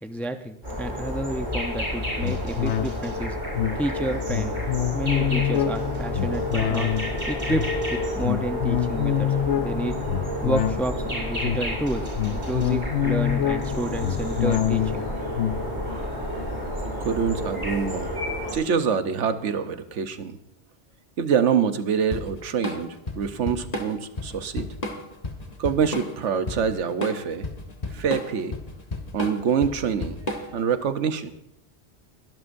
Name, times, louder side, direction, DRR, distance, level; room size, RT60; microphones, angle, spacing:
voice 1, 0.0-3.4 3.8-4.6 4.9-6.9 7.3-9.3 9.6-10.0 10.4-15.1, right 1 dB, ahead, 7 dB, 0.5 m, -30 dB
sound 1, 0.6-18.5, equal, 45° right, 7.2 m, -30 dB
sound 2, 2.2-17.9 18.3-18.4, left 10 dB, 80° left, 0.9 m, -27 dB
voice 2, 17.0-18.1 18.5-20.4 21.2-24.7 25.6-27.5 27.9-28.5 29.1-31.3, right 7 dB, 85° right, 10 dB, 1.2 m, -25 dB
Drum kit / Drum, 22.1-30.7, left 2 dB, 35° left, 1.4 m, -32 dB
22.5 x 12.0 x 2.6 m, 0.79 s
omnidirectional pair, 1.2 m